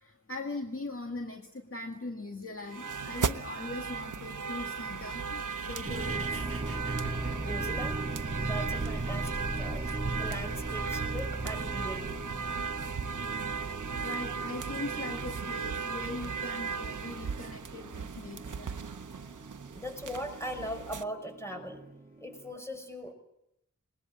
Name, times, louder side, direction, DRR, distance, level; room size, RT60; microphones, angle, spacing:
voice 1, 0.0-6.4 14.0-18.7, left 2 dB, 45° left, 3 dB, 2.1 m, -40 dB
sound 1, 2.7-21.0, right 5 dB, 80° right, 0.8 m, -36 dB
sound 2, 4.8-8.4, right 4 dB, 45° right, 1.6 m, -48 dB
sound 3, 5.8-22.5, right 2 dB, 25° right, 7.0 m, -39 dB
voice 2, 7.4-8.0 8.4-12.1 19.3-19.5 19.7-21.8 22.2-23.1, equal, 10° left, 4 dB, 6.1 m, -40 dB
21.5 x 19.0 x 8.7 m, 0.80 s
wide cardioid pair, 50°, 30 cm